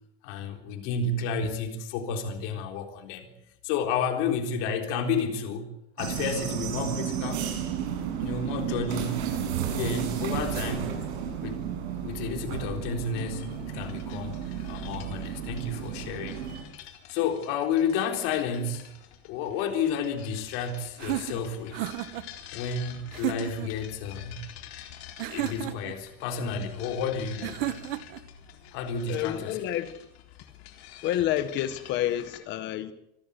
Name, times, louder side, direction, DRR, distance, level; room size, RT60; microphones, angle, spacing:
voice 1, 0.2-3.3 3.6-7.5 8.2-9.3 9.7-10.9 11.4-11.6 12.0-16.4 17.1-18.9 19.2-21.9 22.5-24.4 25.3-27.7 28.7-29.6, left 5 dB, 50° left, 3.9 m, -31 dB
sound 1, 6.0-16.6, right 8 dB, 90° right, 7.7 m, -32 dB
sound 2, 13.1-32.4, left 11 dB, 75° left, 3.9 m, -48 dB
sound 3, 21.0-22.3 23.1-23.7 25.2-26.0 27.4-28.2, right 14 dB, 65° right, 1.9 m, -32 dB
voice 2, 29.1-29.9 31.0-32.9, left 12 dB, 35° left, 1.6 m, -29 dB
26.5 x 14.0 x 8.3 m
supercardioid pair, 175°, 31 cm